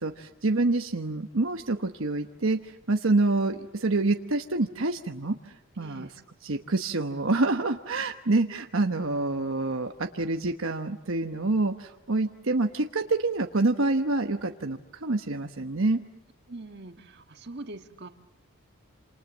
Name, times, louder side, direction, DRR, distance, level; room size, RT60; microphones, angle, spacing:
voice 1, 0.0-6.1 6.4-16.0, right 2 dB, 70° right, 5 dB, 1.1 m, -27 dB
voice 2, 5.8-6.1 16.5-18.1, right 2 dB, 50° right, 7 dB, 1.6 m, -42 dB
28.0 x 27.5 x 7.3 m, 0.90 s
head